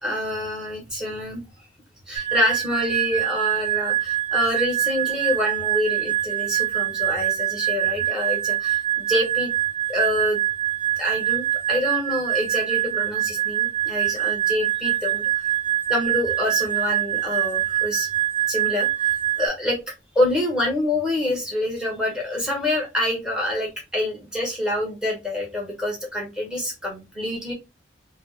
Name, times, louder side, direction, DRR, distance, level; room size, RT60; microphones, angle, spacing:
voice 1, 0.0-1.4 2.1-9.5 9.9-10.4 11.0-15.5 15.9-18.1 18.5-19.8 20.1-27.5, left 1 dB, 5° right, -2 dB, 1.1 m, -26 dB
sound 1, 2.2-19.5, right 12 dB, 30° right, 0.5 m, -24 dB
3.1 x 2.0 x 3.0 m, 0.24 s
head